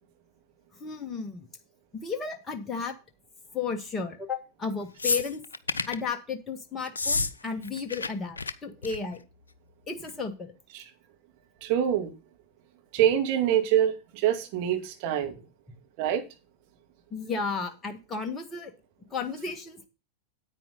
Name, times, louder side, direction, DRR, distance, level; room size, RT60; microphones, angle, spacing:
voice 1, 0.8-1.5 2.0-3.0 3.5-5.5 5.9-9.2 9.9-10.5 17.1-18.7 19.1-19.9, left 5 dB, 15° left, 1.7 m, -33 dB
sound 1, 5.0-6.0 6.9-7.3 7.6-8.1 8.4-8.5 8.8-9.1 10.1-10.2, left 3 dB, 75° left, 0.6 m, -29 dB
voice 2, 11.6-12.1 12.9-15.4 16.0-16.2, right 10 dB, 45° right, 2.4 m, -25 dB
9.7 x 9.0 x 4.1 m
figure-of-eight pair, 90°, 0 cm